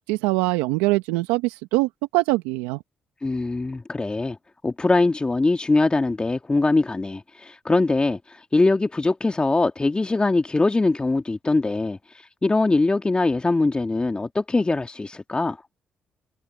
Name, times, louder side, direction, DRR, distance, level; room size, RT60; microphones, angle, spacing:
voice 1, 0.1-2.8, right 21 dB, 85° right, 1.4 m, -23 dB
voice 2, 3.2-4.4 4.6-15.6, left 3 dB, 25° left, 1.9 m, -22 dB
hypercardioid pair, 50°, 4 cm